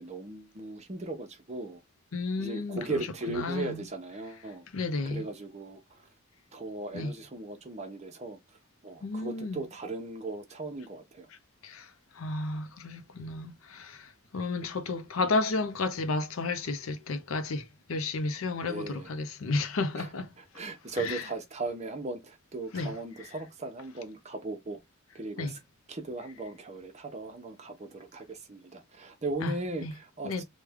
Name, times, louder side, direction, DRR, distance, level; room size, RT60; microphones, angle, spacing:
voice 1, 0.0-1.8 2.4-4.6 5.0-5.8 6.5-8.4 8.8-11.3 18.7-19.1 20.0-20.1 20.4-24.8 25.1-25.6 25.9-30.4, right 2 dB, 35° right, 0.7 m, -37 dB
voice 2, 2.1-3.8 4.7-5.3 6.9-7.1 9.0-9.6 11.6-20.3 21.0-21.2 22.7-22.9 25.4-25.5 29.4-29.5 29.8-29.9 30.2-30.4, left 3 dB, 80° left, 0.6 m, -32 dB
3.2 x 2.2 x 3.4 m
head